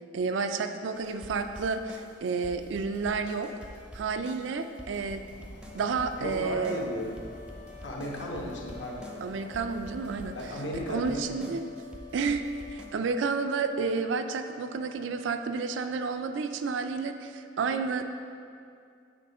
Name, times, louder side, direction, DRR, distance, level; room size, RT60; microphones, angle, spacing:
voice 1, 0.1-3.5 3.9-5.2 5.7-6.8 9.2-10.4 10.8-11.6 12.1-12.4 12.7-18.0, right 4 dB, 75° right, 8 dB, 0.4 m, -30 dB
sound 1, 0.9-12.9, equal, 5° right, 0.5 m, -47 dB
sound 2, 5.0-10.6, left 1 dB, 35° left, 0.7 m, -52 dB
sound 3, 5.6-16.5, left 9 dB, 50° left, 1.0 m, -51 dB
voice 2, 6.2-7.2 7.8-9.5 10.3-11.5, equal, 70° left, -2 dB, 1.1 m, -35 dB
7.7 x 3.5 x 5.4 m, 2.4 s
head